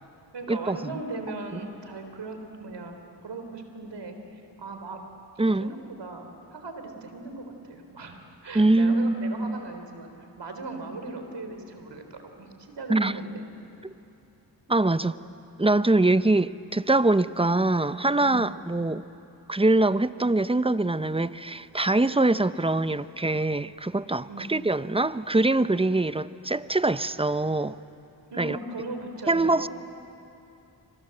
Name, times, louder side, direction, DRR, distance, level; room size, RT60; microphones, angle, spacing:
voice 1, 0.3-2.9 3.2-5.0 5.4-13.4 15.1-15.2 18.2-18.4 24.3-24.5 28.3-29.7, right 3 dB, 70° right, 5 dB, 4.1 m, -38 dB
voice 2, 5.4-5.7 8.5-9.6 12.9-13.1 13.8-13.9 14.7-15.1 15.6-19.0 19.5-27.7 28.4-28.6 29.3-29.7, right 2 dB, 15° right, 14 dB, 0.8 m, -23 dB
28.5 x 25.5 x 8.0 m, 2.8 s
cardioid pair, 40°, 44 cm